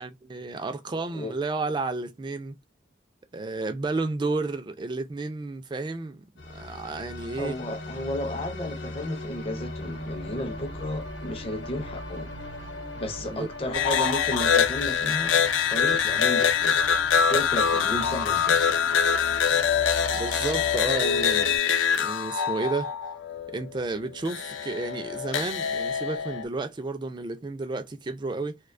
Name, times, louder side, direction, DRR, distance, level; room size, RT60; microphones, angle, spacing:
voice 1, 0.0-2.6 3.3-6.3 6.5-7.5 13.2-13.8 17.9-18.2 20.1-21.5 21.9-22.9 23.5-28.6, right 3 dB, 25° right, 0.3 m, -32 dB
voice 2, 0.9-1.4 7.4-12.3 13.0-15.4 15.7-16.8 17.3-18.6, left 1 dB, 30° left, 0.5 m, -33 dB
sound 1, 6.4-21.6, left 2 dB, 65° left, 0.9 m, -38 dB
sound 2, 13.7-23.7 24.3-26.5, left 7 dB, 85° left, 0.4 m, -24 dB
2.4 x 2.2 x 2.4 m
head